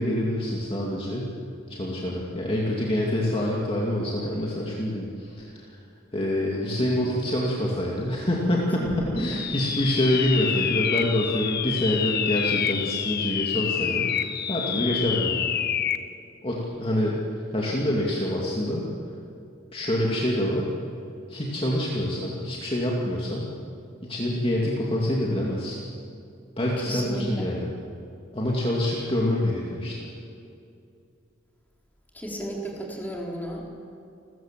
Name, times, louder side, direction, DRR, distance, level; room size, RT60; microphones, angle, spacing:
voice 1, 0.0-1.3 1.7-5.7 6.1-15.5 16.4-17.2 17.5-18.8 19.7-20.7 21.3-23.5 24.0-25.8 26.6-27.7 28.3-30.1, left 1 dB, 30° left, -3 dB, 2.4 m, -26 dB
sound 1, 9.2-16.1, left 9 dB, 50° left, 0.9 m, -28 dB
voice 2, 9.3-9.6 26.8-27.5 32.1-33.6, equal, 10° left, -2 dB, 4.0 m, -34 dB
29.5 x 14.0 x 7.6 m, 2.6 s
head